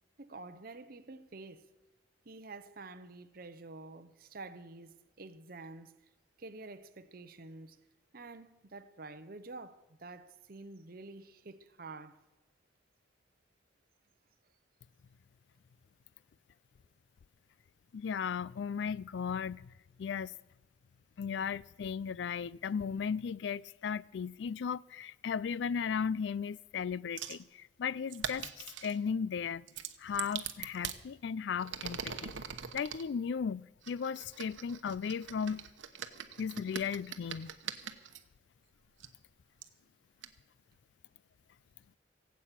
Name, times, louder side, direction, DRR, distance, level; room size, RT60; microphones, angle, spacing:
voice 1, 0.2-1.6 2.3-5.9 6.4-7.8 8.1-12.2, right 3 dB, 50° right, 0.8 m, -48 dB
voice 2, 17.9-19.7 20.0-20.3 21.2-29.6 30.0-32.3 32.7-35.6 36.4-37.5, left 6 dB, 70° left, 0.3 m, -36 dB
sound 1, 27.2-27.4 28.1-29.0 29.7-31.0 31.6-33.0 33.8-38.2 39.0-39.1 39.6-39.7 40.2-40.3, right 8 dB, 85° right, 1.0 m, -42 dB
17.0 x 8.4 x 7.4 m
head